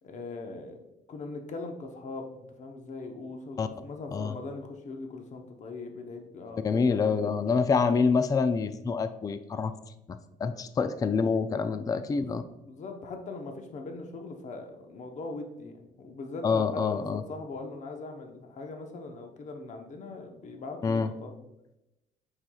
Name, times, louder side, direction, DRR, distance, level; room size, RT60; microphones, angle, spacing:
voice 1, 0.0-0.8 1.1-2.3 2.6-6.6 6.9-8.0 12.1-12.4 12.6-21.4, left 3 dB, 45° left, 4 dB, 0.9 m, -41 dB
voice 2, 6.6-9.7 10.1-12.4 16.4-17.2 20.8-21.1, left 5 dB, 20° left, 11 dB, 0.4 m, -26 dB
7.7 x 5.7 x 2.3 m, 0.91 s
cardioid pair, 110°, 17 cm